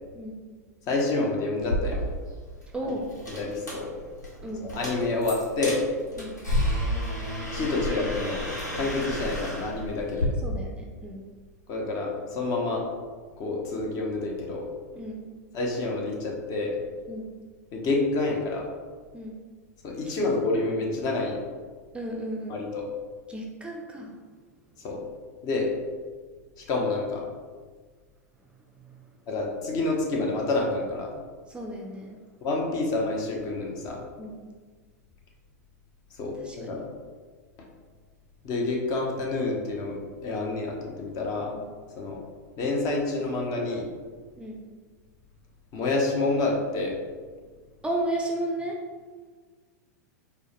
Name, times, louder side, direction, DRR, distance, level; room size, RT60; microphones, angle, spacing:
voice 1, 0.9-2.1 2.8-2.9 3.3-3.9 4.6-5.8 7.5-8.5 8.7-10.3 11.7-12.8 13.4-14.7 15.5-16.8 17.7-18.7 19.8-21.4 22.5-22.9 24.8-25.0 25.4-25.7 26.6-27.2 29.3-31.1 32.4-34.0 36.2-36.9 38.4-41.5 42.0-42.2 42.6-43.9 45.7-47.0, left 3 dB, 40° left, -1 dB, 0.8 m, -28 dB
sound 1, 1.6-10.3, left 1 dB, 90° left, 1.1 m, -31 dB
voice 2, 2.7-3.1 4.4-4.7 6.2-6.4 10.4-11.2 15.0-15.3 17.1-17.3 19.1-19.4 20.0-20.3 21.9-22.6 23.3-24.1 28.6-29.1 31.5-32.2 34.2-34.5 36.4-36.8 41.5-41.6 44.4-44.6 47.8-48.8, right 1 dB, 10° right, -1 dB, 0.4 m, -34 dB
4.4 x 2.2 x 3.0 m, 1.5 s
hypercardioid pair, 100°, 9 cm